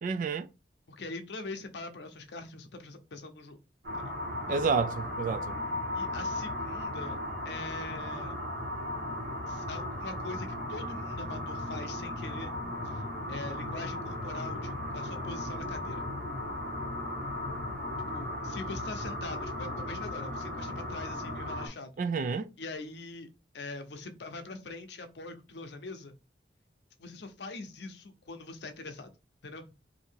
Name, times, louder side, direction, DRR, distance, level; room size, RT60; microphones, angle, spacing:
voice 1, 0.0-0.5 4.5-5.5 22.0-22.5, right 5 dB, 50° right, 0.3 m, -29 dB
voice 2, 0.9-3.6 3.9-4.1 5.9-7.2 7.4-8.4 9.5-12.5 12.8-13.0 13.3-16.1 18.1-21.9 22.6-26.1 27.0-29.1 29.4-29.7, left 3 dB, 75° left, 0.6 m, -43 dB
sound 1, 3.8-21.7, left 1 dB, 75° right, 1.5 m, -36 dB
2.7 x 2.7 x 4.3 m
head